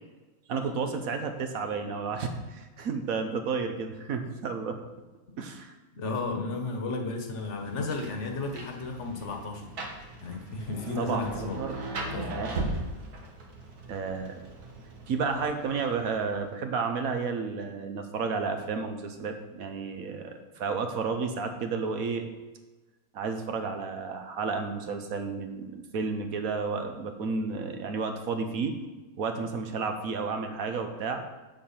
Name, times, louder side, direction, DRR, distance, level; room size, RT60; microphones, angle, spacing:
voice 1, 0.5-4.8 5.4-5.7 11.0-11.8 12.2-12.5 13.9-14.4 15.1-22.2 23.1-28.7 29.2-31.2, right 5 dB, 70° right, 6 dB, 1.3 m, -32 dB
voice 2, 6.0-9.7 10.2-11.6 12.0-12.3, left 3 dB, 50° left, 3 dB, 1.5 m, -33 dB
Rain, 7.4-16.4, right 2 dB, 85° right, 1.8 m, -39 dB
7.7 x 6.8 x 5.7 m, 1.2 s
omnidirectional pair, 1.6 m